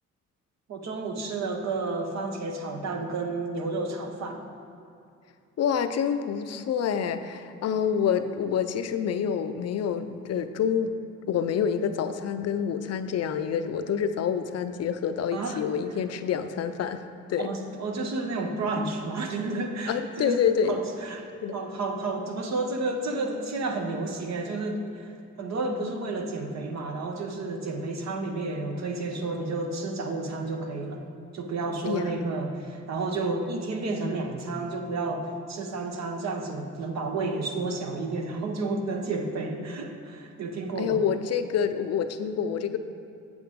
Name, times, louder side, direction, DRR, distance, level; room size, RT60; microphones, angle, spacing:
voice 1, 0.7-4.5 15.3-15.6 17.4-20.4 20.7-31.0 31.3-41.0, right 3 dB, 60° right, 4 dB, 1.0 m, -31 dB
voice 2, 5.6-10.9 11.3-17.0 17.3-17.5 19.9-20.8 21.4-21.6 31.9-32.1 40.8-42.8, left 7 dB, 55° left, 9 dB, 0.5 m, -27 dB
8.2 x 7.8 x 3.6 m, 2.6 s
cardioid pair, 90°, 30 cm